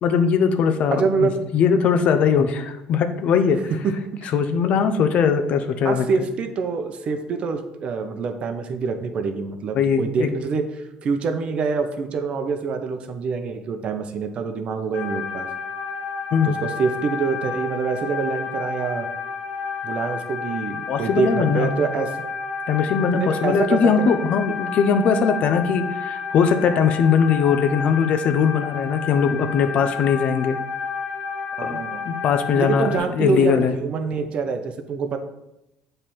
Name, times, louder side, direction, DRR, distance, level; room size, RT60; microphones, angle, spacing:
voice 1, 0.0-3.6 4.3-6.0 9.7-10.3 16.3-16.6 20.9-21.8 22.7-30.6 31.6-31.8 32.1-32.9 33.2-33.7, left 6 dB, 55° left, 9 dB, 0.6 m, -20 dB
voice 2, 0.9-1.5 3.8-4.3 5.8-15.5 16.4-19.1 19.8-22.1 23.1-24.1 31.6-32.0 32.6-35.2, right 5 dB, 50° right, 7 dB, 0.7 m, -25 dB
sound 1, 14.9-33.0, left 5 dB, 90° left, 1.2 m, -31 dB
7.3 x 3.3 x 4.3 m, 0.94 s
cardioid pair, 105°, 3 cm